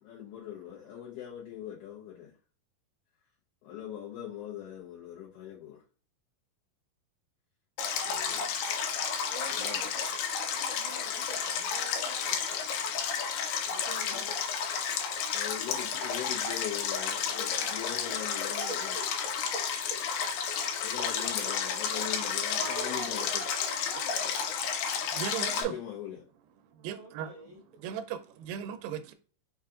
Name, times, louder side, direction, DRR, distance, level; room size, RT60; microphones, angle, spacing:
voice 1, 0.0-2.3 3.6-5.8 8.1-8.5 9.5-9.9 14.1-14.2 15.2-18.9 20.8-23.4 25.5-26.3 28.6-28.7, left 10 dB, 70° left, 2.0 m, -41 dB
Stream, 7.8-25.6, left 7 dB, 90° left, 2.5 m, -32 dB
voice 2, 9.3-10.0 10.4-12.6 13.7-14.3 15.3-15.4 18.7-18.8 19.5-19.6 19.9-20.0 22.6-24.5 26.9-27.6, right 2 dB, 30° right, 0.6 m, -45 dB
voice 3, 25.1-25.8 26.7-27.3 27.8-29.1, right 9 dB, 90° right, 2.3 m, -37 dB
5.6 x 2.4 x 3.6 m
omnidirectional pair, 4.0 m